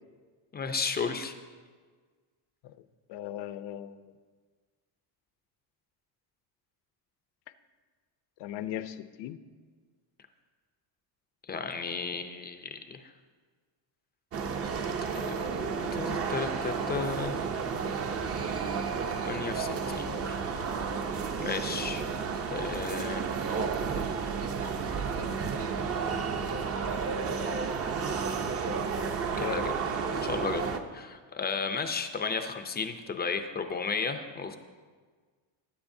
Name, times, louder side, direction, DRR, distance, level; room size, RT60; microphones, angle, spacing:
voice 1, 0.5-1.3 11.5-13.1 15.1-17.3 19.2-20.4 21.4-22.0 22.5-23.3 29.4-29.7 30.2-30.7 30.9-34.6, left 5 dB, 20° left, 7 dB, 0.4 m, -34 dB
voice 2, 3.1-4.1 8.4-9.4 29.4-29.7, left 11 dB, 60° left, 13 dB, 0.7 m, -38 dB
sound 1, 14.3-30.8, right 5 dB, 30° right, 0.6 m, -32 dB
sound 2, 19.9-30.4, right 5 dB, 60° right, 1.1 m, -44 dB
20.0 x 9.3 x 2.6 m, 1.5 s
cardioid pair, 160°, 48 cm